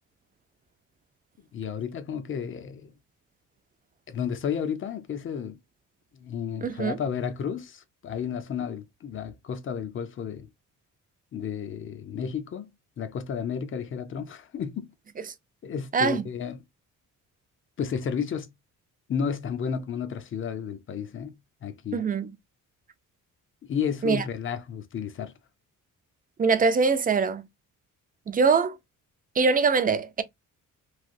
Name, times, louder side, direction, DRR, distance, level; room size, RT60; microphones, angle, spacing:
voice 1, 1.5-2.9 4.1-5.6 6.1-10.5 11.3-12.7 13.0-14.9 15.6-16.6 17.8-18.5 19.1-22.1 23.6-25.3, left 7 dB, 40° left, 0.6 m, -32 dB
voice 2, 6.6-7.0 15.9-16.2 21.9-22.3 24.0-24.2 26.4-27.4 28.3-28.8 29.4-30.2, right 5 dB, 25° right, 0.4 m, -23 dB
3.2 x 2.7 x 2.6 m
cardioid pair, 135°, 32 cm